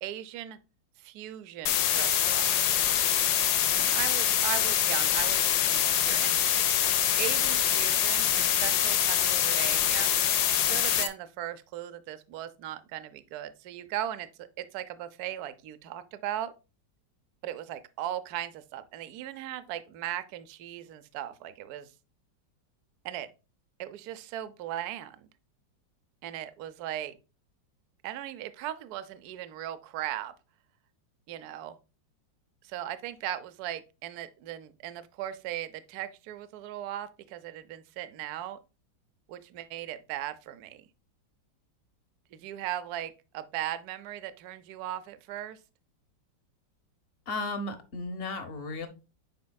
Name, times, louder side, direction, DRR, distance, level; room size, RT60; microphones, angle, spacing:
voice 1, 0.0-0.6 1.0-2.6 3.8-6.4 7.2-10.1 10.5-16.5 17.4-21.9 23.0-23.3 23.8-25.3 26.2-27.2 28.0-30.3 31.3-31.8 32.6-38.6 39.3-40.9 42.3-45.6, right 12 dB, 65° right, 1.0 m, -38 dB
sound 1, 1.7-11.1, left 10 dB, 65° left, 1.1 m, -25 dB
voice 2, 47.3-48.9, left 2 dB, 40° left, 1.0 m, -34 dB
9.5 x 4.5 x 2.2 m
omnidirectional pair, 2.1 m